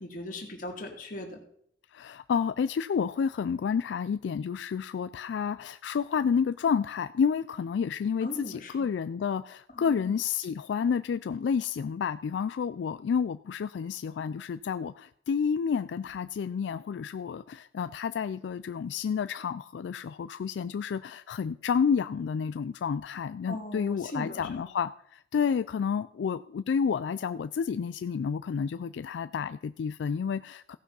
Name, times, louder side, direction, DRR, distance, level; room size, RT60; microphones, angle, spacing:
voice 1, 0.0-1.4 8.2-8.9 9.7-10.1 23.5-24.6, left 1 dB, 45° left, 2 dB, 2.2 m, -39 dB
voice 2, 1.9-30.8, left 6 dB, 85° left, 11 dB, 0.3 m, -30 dB
16.0 x 5.9 x 5.5 m, 0.68 s
head